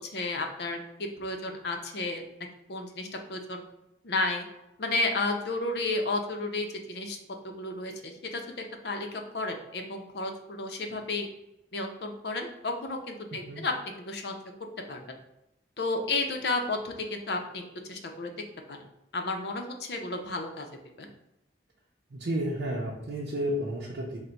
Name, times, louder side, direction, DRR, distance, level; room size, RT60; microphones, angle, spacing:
voice 1, 0.0-2.2 2.7-3.6 4.0-4.4 4.8-7.2 7.4-11.3 11.7-14.4 14.9-15.0 15.8-17.6 17.9-18.3 18.7-18.8 19.1-20.6 21.0-21.1, left 2 dB, 70° left, 4 dB, 0.6 m, -32 dB
voice 2, 13.3-13.7 22.1-24.2, equal, 80° right, -4 dB, 0.7 m, -32 dB
3.9 x 2.2 x 4.4 m, 0.89 s
head